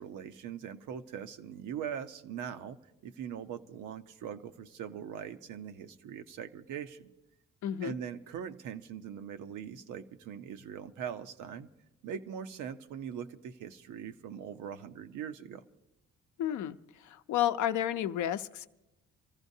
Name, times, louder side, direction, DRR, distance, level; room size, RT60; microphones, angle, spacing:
voice 1, 0.0-2.8 3.0-7.1 7.8-11.7 12.0-15.6, right 8 dB, 80° right, 0.8 m, -41 dB
voice 2, 7.6-8.0 16.4-16.8 17.0-18.7, left 11 dB, 75° left, 0.6 m, -31 dB
25.5 x 14.5 x 2.7 m
cardioid pair, 90°, 30 cm